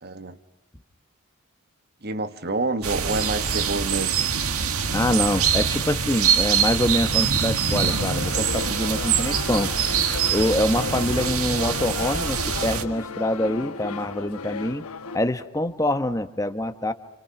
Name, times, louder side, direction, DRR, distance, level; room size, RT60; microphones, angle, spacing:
voice 1, 0.0-0.4 2.0-4.2, right 2 dB, 45° right, 1.3 m, -28 dB
sound 1, 2.8-12.8, right 7 dB, 85° right, 1.9 m, -24 dB
voice 2, 4.9-9.7 10.3-14.8 15.1-16.9, left 1 dB, 15° left, 1.1 m, -25 dB
sound 2, 7.8-15.2, left 4 dB, 90° left, 1.1 m, -34 dB
28.5 x 27.5 x 5.9 m
head